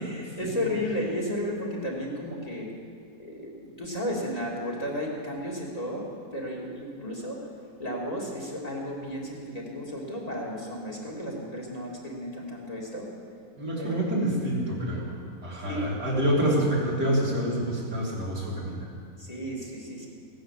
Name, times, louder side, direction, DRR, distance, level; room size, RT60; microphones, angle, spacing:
voice 1, 0.0-2.7 3.2-7.5 7.8-13.1 13.8-14.0 15.6-16.0 19.2-20.1, equal, 25° left, -3 dB, 2.8 m, -33 dB
voice 2, 13.6-15.1 15.4-18.9, right 1 dB, 80° right, -5 dB, 4.0 m, -27 dB
17.0 x 10.5 x 7.6 m, 2.2 s
omnidirectional pair, 1.7 m